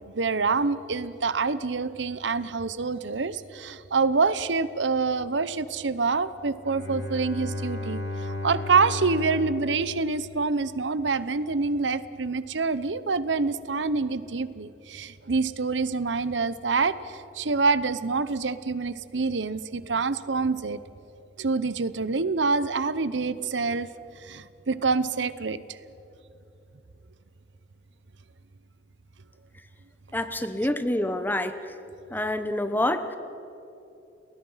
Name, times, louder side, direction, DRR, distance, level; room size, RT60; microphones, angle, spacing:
voice 1, 0.1-20.8 21.4-23.9 24.2-25.8 30.6-30.7, right 4 dB, 85° right, 15 dB, 0.9 m, -26 dB
Bowed string instrument, 6.6-10.9, left 2 dB, 85° left, 5.8 m, -35 dB
voice 2, 30.1-31.5 32.1-33.2, left 1 dB, 10° left, 10 dB, 1.0 m, -27 dB
30.0 x 20.0 x 5.7 m, 2.9 s
head